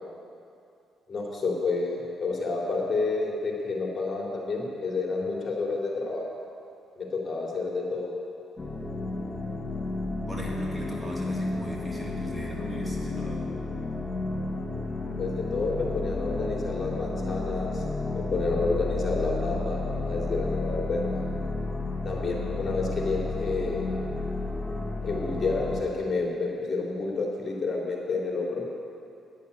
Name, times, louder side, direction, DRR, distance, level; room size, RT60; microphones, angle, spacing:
voice 1, 1.1-6.2 7.0-8.1 15.2-17.8 18.1-21.2 22.0-23.8 25.0-28.6, left 3 dB, 40° left, -2 dB, 3.1 m, -29 dB
sound 1, 8.6-25.8, left 3 dB, 20° left, 1.3 m, -32 dB
voice 2, 10.3-13.5, right 1 dB, 15° right, -3 dB, 2.1 m, -38 dB
11.0 x 8.4 x 8.4 m, 2.5 s
cardioid pair, 90°, 0 cm